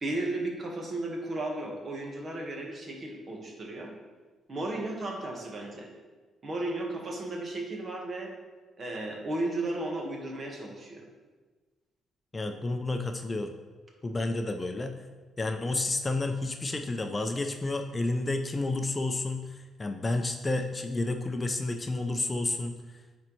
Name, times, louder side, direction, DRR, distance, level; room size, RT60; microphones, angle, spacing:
voice 1, 0.0-4.0 4.5-5.9 6.4-8.3 8.8-11.0, right 2 dB, 40° right, 0 dB, 1.4 m, -34 dB
voice 2, 12.3-13.5 14.0-15.0 15.4-22.7, left 2 dB, 25° left, 6 dB, 0.5 m, -30 dB
9.2 x 4.3 x 3.1 m, 1.3 s
cardioid pair, 90°, 0 cm